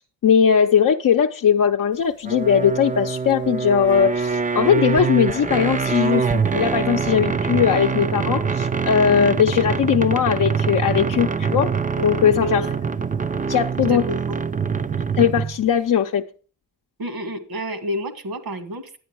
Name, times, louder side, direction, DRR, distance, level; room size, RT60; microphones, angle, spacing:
voice 1, 0.0-11.7 12.0-12.6 13.5-14.0 15.2-16.3, left 8 dB, 60° left, 0.7 m, -19 dB
sound 1, 2.2-15.6, right 5 dB, 20° right, 0.5 m, -24 dB
voice 2, 17.0-19.0, equal, 70° right, 2.0 m, -28 dB
11.0 x 9.3 x 4.6 m
wide cardioid pair, 120°, 37 cm